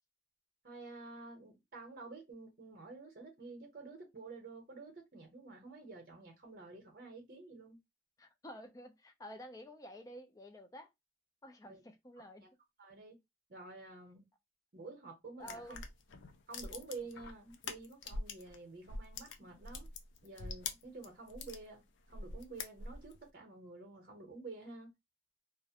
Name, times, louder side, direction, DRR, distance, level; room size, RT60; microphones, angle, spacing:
voice 1, 0.6-7.8 11.6-11.8 12.2-12.5 12.8-13.2 13.5-14.2 14.7-15.8 16.5-19.9 20.2-24.9, right 3 dB, 50° right, 0.8 m, -50 dB
voice 2, 8.2-10.9 11.4-12.4 15.4-15.8, equal, 20° left, 0.4 m, -50 dB
sound 1, 15.4-18.6 18.8-21.6 22.1-23.2, left 4 dB, 85° left, 0.4 m, -44 dB
2.4 x 2.0 x 2.7 m
head